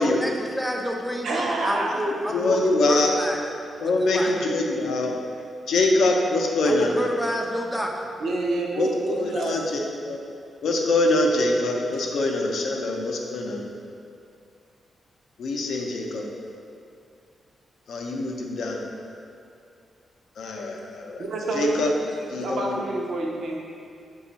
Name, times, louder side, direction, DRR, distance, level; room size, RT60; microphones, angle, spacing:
voice 1, 0.0-3.4 4.1-4.3 6.6-8.1, equal, ahead, 1 dB, 0.3 m, -29 dB
voice 2, 1.2-2.0 8.2-9.9 11.9-12.0 21.2-23.6, right 2 dB, 65° right, -1 dB, 0.5 m, -28 dB
voice 3, 2.3-3.2 3.8-5.1 5.7-6.9 8.8-10.2 10.6-13.6 15.4-16.3 17.9-18.8 20.4-21.3 21.5-21.9 22.3-22.8, left 2 dB, 70° left, 0 dB, 0.5 m, -24 dB
5.0 x 2.3 x 3.9 m, 2.4 s
wide cardioid pair, 165°, 0 cm